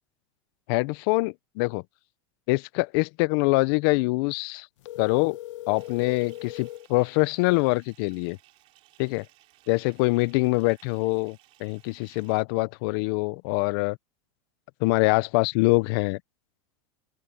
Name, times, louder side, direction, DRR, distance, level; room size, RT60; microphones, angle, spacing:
voice 1, 0.7-1.8 2.5-4.7 5.0-5.4 5.7-8.4 9.0-9.3 9.7-14.0 14.8-16.2, left 25 dB, 50° left, 0.5 m, -24 dB
sound 1, 4.8-6.9, left 14 dB, 75° left, 1.0 m, -39 dB
Bathtub (filling or washing) / Fill (with liquid), 5.7-12.4, right 17 dB, 40° right, 3.6 m, -60 dB
open air
supercardioid pair, 160°, 16 cm